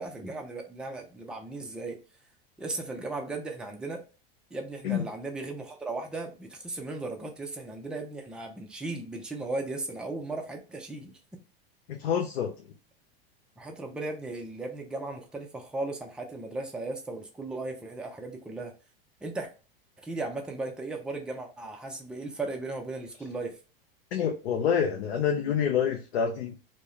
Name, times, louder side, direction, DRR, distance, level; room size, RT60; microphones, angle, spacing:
voice 1, 0.0-2.0 2.6-4.0 4.5-11.1 13.6-18.7 19.2-19.5 20.0-23.6, right 2 dB, 5° right, 0.3 m, -36 dB
voice 2, 11.9-12.7 24.1-26.6, left 7 dB, 85° left, 0.5 m, -27 dB
2.3 x 2.1 x 2.9 m
hypercardioid pair, 100°, 31 cm